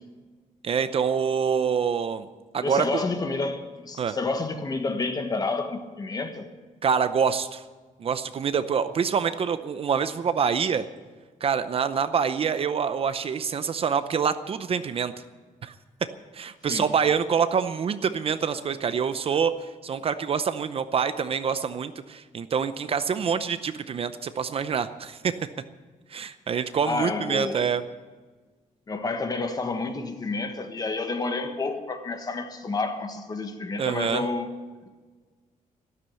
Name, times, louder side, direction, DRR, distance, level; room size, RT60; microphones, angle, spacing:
voice 1, 0.6-2.3 2.5-3.0 4.0-4.2 6.8-7.6 8.0-10.9 11.4-15.1 15.6-15.7 16.3-25.2 26.1-27.8 33.8-34.2, right 6 dB, 40° right, 0.6 m, -26 dB
voice 2, 2.6-6.5 16.7-16.9 26.8-27.7 28.9-34.5, left 3 dB, 25° left, 1.4 m, -29 dB
12.5 x 12.5 x 8.2 m
wide cardioid pair, 155°, 14 cm